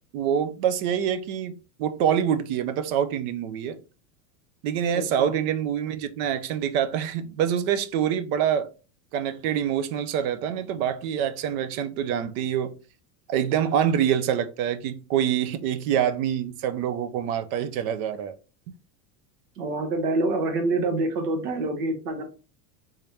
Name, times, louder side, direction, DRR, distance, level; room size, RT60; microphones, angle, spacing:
voice 1, 0.1-3.8 4.6-8.7 9.1-12.8 13.3-18.3, right 9 dB, 65° right, 0.6 m, -26 dB
voice 2, 4.9-5.3 19.6-22.2, right 2 dB, 90° right, 1.2 m, -26 dB
3.6 x 3.4 x 2.7 m
supercardioid pair, 140°, 46 cm